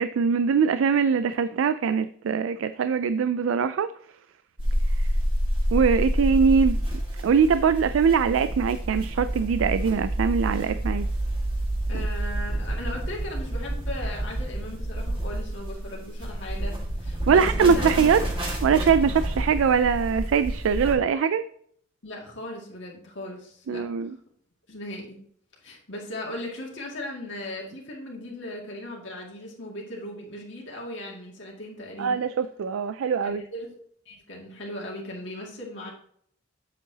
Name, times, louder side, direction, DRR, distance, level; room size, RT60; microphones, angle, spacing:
voice 1, 0.0-3.9 5.7-6.8 7.2-11.0 17.3-18.2 18.6-21.4 23.7-24.1 32.0-33.4, right 6 dB, 90° right, 0.4 m, -22 dB
sound 1, 4.6-21.0, right 1 dB, 25° right, 1.8 m, -28 dB
voice 2, 11.9-18.0 22.0-23.8 24.7-25.2 25.6-32.2 33.2-33.7 34.1-35.9, left 1 dB, 65° left, 2.1 m, -38 dB
8.2 x 7.4 x 2.8 m
head